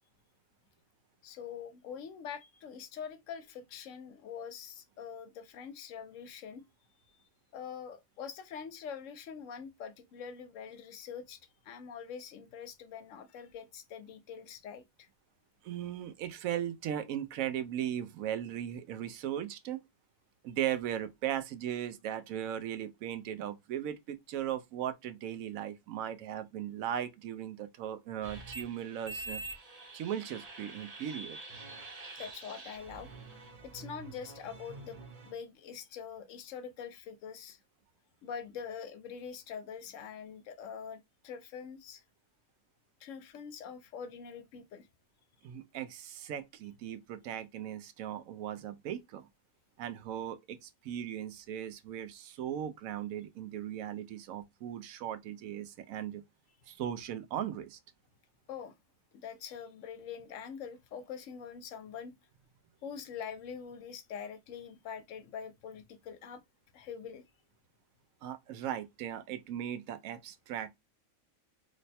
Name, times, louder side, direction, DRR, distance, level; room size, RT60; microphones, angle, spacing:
voice 1, 1.2-6.6 7.1-11.4 11.6-15.1 32.2-33.1 33.6-37.6 38.2-42.0 43.0-44.9 58.5-58.7 59.1-62.1 62.8-66.4 66.7-67.2, left 7 dB, 75° left, 0.9 m, -44 dB
voice 2, 15.6-19.8 20.4-29.4 29.9-31.4 45.4-49.3 49.8-56.2 56.7-57.8 68.2-70.7, right 10 dB, 90° right, 1.0 m, -38 dB
sound 1, 28.2-35.3, right 2 dB, 35° right, 0.8 m, -46 dB
3.1 x 2.2 x 4.1 m
omnidirectional pair, 1.4 m